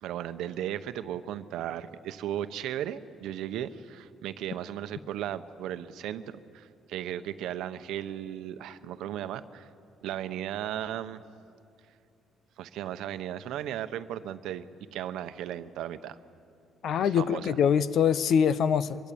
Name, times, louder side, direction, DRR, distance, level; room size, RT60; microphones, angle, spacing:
voice 1, 0.0-9.7 10.0-11.2 12.6-14.7 14.9-16.2 17.0-17.5, right 11 dB, 80° right, 11 dB, 0.9 m, -36 dB
voice 2, 16.8-19.1, left 7 dB, 55° left, 16 dB, 0.7 m, -24 dB
24.0 x 23.0 x 8.6 m, 2.5 s
cardioid pair, 160°, 0 cm